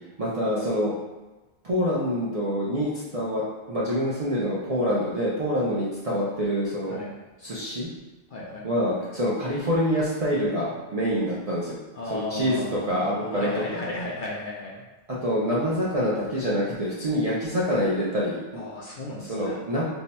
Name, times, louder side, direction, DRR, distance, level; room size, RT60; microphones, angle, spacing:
voice 1, 0.2-0.9 1.6-3.4 3.7-6.9 7.4-7.9 8.6-11.8 12.1-13.5 15.2-18.6 19.3-19.8, equal, 45° right, -7 dB, 0.5 m, -26 dB
voice 2, 8.3-9.1 11.9-14.8 18.5-19.6, left 1 dB, 60° left, -4 dB, 0.6 m, -35 dB
2.7 x 2.2 x 4.0 m, 1.1 s
omnidirectional pair, 1.2 m